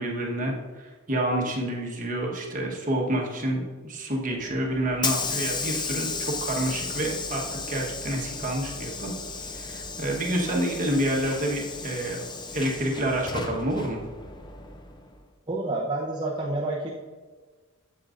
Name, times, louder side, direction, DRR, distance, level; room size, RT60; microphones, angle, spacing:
voice 1, 0.0-9.1 9.4-12.2 12.5-14.0, right 1 dB, 40° right, -1 dB, 1.3 m, -28 dB
Hiss / Sliding door, 4.4-15.2, left 4 dB, 20° left, 0.5 m, -34 dB
voice 2, 15.5-16.9, right 2 dB, 25° right, -5 dB, 0.8 m, -28 dB
8.5 x 7.8 x 2.6 m, 1.4 s
head